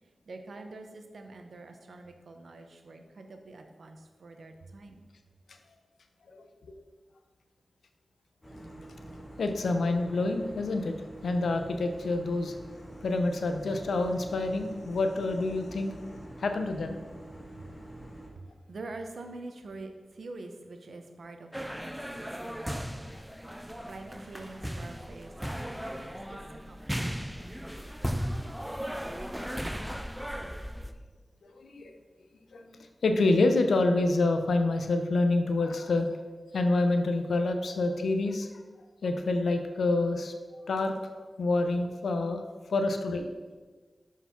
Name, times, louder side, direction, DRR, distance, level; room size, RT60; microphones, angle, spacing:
voice 1, 0.0-5.1 17.5-17.7 18.3-23.1 23.8-27.5, right 2 dB, 75° right, 5 dB, 0.8 m, -46 dB
sound 1, 8.4-18.3, right 1 dB, 25° left, 1.5 m, -46 dB
voice 2, 9.4-10.9 11.2-12.5 13.0-17.0 28.9-29.0 31.4-31.9 32.5-36.1 36.5-38.5 39.0-40.3 40.7-40.9 41.4-42.4 42.7-43.3, left 2 dB, 90° left, 6 dB, 0.5 m, -27 dB
sound 2, 21.5-30.9, equal, 5° right, 0.5 m, -36 dB
5.6 x 4.7 x 5.7 m, 1.4 s
cardioid pair, 50°, 0 cm